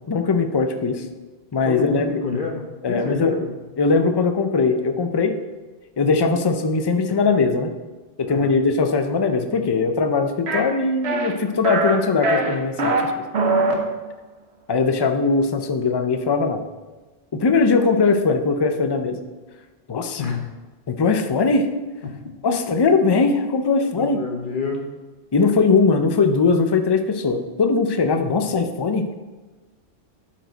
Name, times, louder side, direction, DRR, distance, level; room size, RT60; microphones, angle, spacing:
voice 1, 0.1-1.0 1.5-2.1 2.8-3.3 3.8-5.3 6.0-7.7 8.2-13.0 14.7-16.6 17.3-19.2 19.9-20.2 20.9-21.7 22.4-24.2 25.3-29.0, left 4 dB, 30° left, 6 dB, 0.4 m, -20 dB
voice 2, 1.6-3.5 8.3-8.5 20.2-20.4 24.0-24.8, left 4 dB, 50° left, 2 dB, 0.9 m, -28 dB
sound 1, 10.5-10.6 11.0-11.3 11.6-12.0 12.2-13.0 13.3-13.8, right 2 dB, 65° right, 1.3 m, -21 dB
12.0 x 4.6 x 4.0 m, 1.2 s
omnidirectional pair, 1.2 m